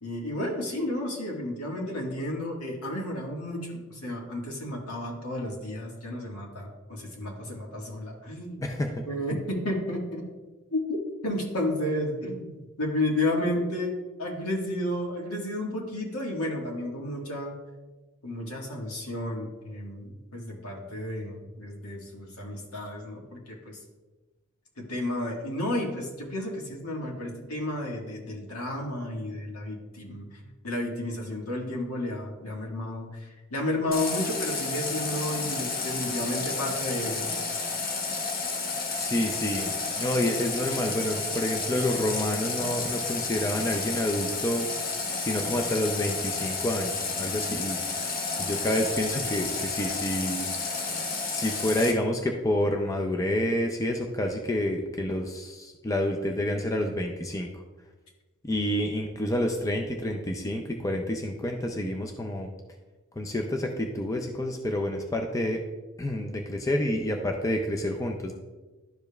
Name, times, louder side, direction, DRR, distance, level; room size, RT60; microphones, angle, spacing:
voice 1, 0.0-8.6 9.1-10.3 10.7-10.8 11.2-17.5 18.2-23.8 24.8-37.3, left 1 dB, 85° left, -1 dB, 1.6 m, -32 dB
voice 2, 8.6-9.0 39.0-44.7 45.2-50.5 51.3-57.5 58.4-62.5 63.2-65.6 66.0-68.3, left 1 dB, 15° left, 2 dB, 0.4 m, -29 dB
Water tap faucet, 33.9-51.9, left 4 dB, 40° left, 0.8 m, -31 dB
11.5 x 5.0 x 2.3 m, 1.2 s
head